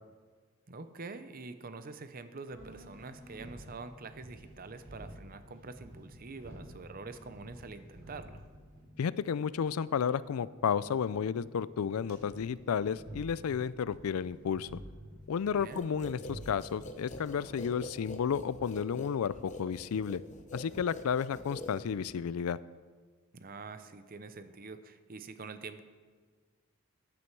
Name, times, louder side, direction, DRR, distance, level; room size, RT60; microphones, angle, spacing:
voice 1, 0.7-8.4 15.5-15.9 23.3-25.8, right 3 dB, 40° right, 11 dB, 0.7 m, -46 dB
sound 1, 2.5-17.7, right 1 dB, 80° right, 3.6 m, -51 dB
voice 2, 9.0-14.8 15.3-20.2 20.5-22.6, left 7 dB, 85° left, 18 dB, 0.4 m, -32 dB
sound 2, 15.7-22.2, left 1 dB, 35° left, 0.9 m, -45 dB
13.0 x 9.8 x 4.6 m, 1.5 s
head